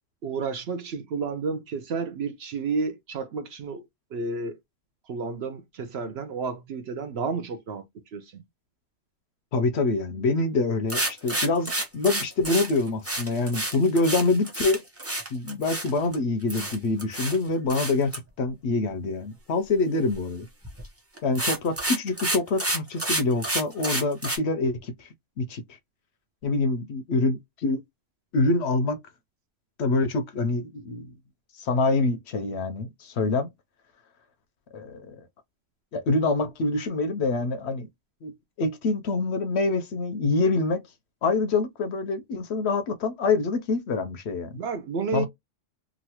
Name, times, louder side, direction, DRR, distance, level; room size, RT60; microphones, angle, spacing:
voice 1, 0.2-3.9 4.1-4.6 5.1-7.8 8.1-8.4 44.5-45.3, right 4 dB, 65° right, 0.7 m, -31 dB
voice 2, 9.5-14.8 15.3-20.5 21.2-25.1 25.4-25.6 26.4-27.8 28.3-29.0 29.8-31.1 31.6-33.5 34.7-35.2 35.9-37.9 38.2-40.8 41.2-44.6 45.1-45.3, left 3 dB, 65° left, 0.8 m, -25 dB
sound 1, 10.9-16.2 16.5-17.4 17.7-18.2 20.6-20.9 21.2-24.4, right 1 dB, 15° right, 0.7 m, -29 dB
3.0 x 2.5 x 2.8 m
omnidirectional pair, 1.3 m